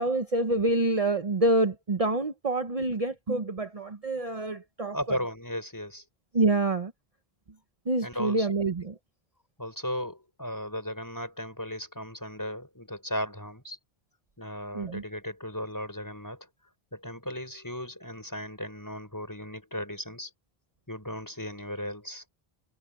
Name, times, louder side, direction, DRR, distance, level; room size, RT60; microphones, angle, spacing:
voice 1, 0.0-5.2 6.3-6.9 7.9-9.0 14.7-15.0, right 2 dB, 35° right, 1.0 m, -27 dB
voice 2, 4.9-6.0 8.0-8.5 9.6-13.8 14.4-16.5 16.9-20.3 20.9-22.2, equal, 20° left, 5.7 m, -36 dB
omnidirectional pair, 1.0 m